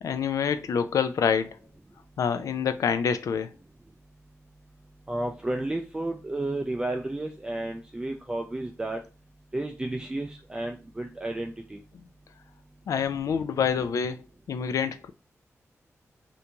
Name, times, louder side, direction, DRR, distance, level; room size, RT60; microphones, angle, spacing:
voice 1, 0.0-1.6 2.2-3.5 12.9-14.2 14.5-15.1, left 7 dB, 90° left, 0.3 m, -26 dB
voice 2, 5.1-9.0 9.5-11.8, right 2 dB, 15° right, 0.3 m, -32 dB
2.9 x 2.6 x 3.3 m
wide cardioid pair, 130°, 5 cm